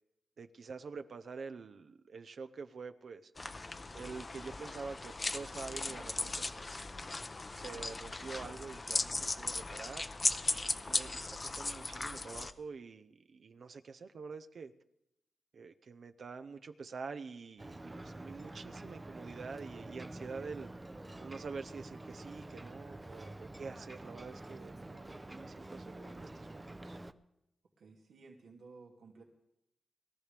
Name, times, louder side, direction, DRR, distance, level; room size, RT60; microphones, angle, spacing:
voice 1, 0.4-3.3 3.9-6.8 7.6-10.1 10.8-14.7 15.5-20.7 21.2-27.0, right 4 dB, 55° right, 0.6 m, -47 dB
sound 1, 3.4-12.5, left 3 dB, 25° left, 0.7 m, -37 dB
Ocean, 17.6-27.1, right 2 dB, 15° right, 0.6 m, -48 dB
voice 2, 27.8-29.2, right 4 dB, 85° right, 2.5 m, -56 dB
21.5 x 14.0 x 3.4 m
wide cardioid pair, 125°, 0 cm